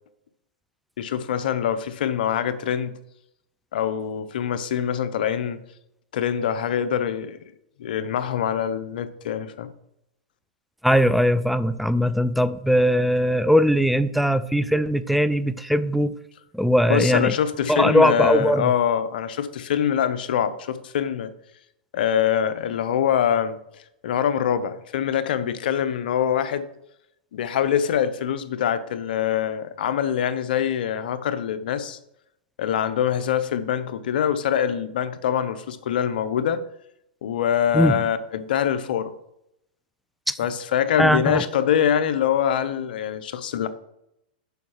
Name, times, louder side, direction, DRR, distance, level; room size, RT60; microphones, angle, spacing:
voice 1, 1.0-2.9 3.7-5.6 6.1-7.4 7.8-9.7 16.9-21.3 21.9-23.6 24.0-26.7 27.3-32.0 32.6-36.6 37.2-39.1 40.4-43.7, left 9 dB, 70° left, 12 dB, 0.8 m, -24 dB
voice 2, 10.8-16.1 16.5-17.3 17.7-18.7 37.7-38.0 40.3-40.4 41.0-41.4, equal, ahead, 13 dB, 0.4 m, -20 dB
6.9 x 5.5 x 6.4 m, 0.81 s
hypercardioid pair, 125°, 5 cm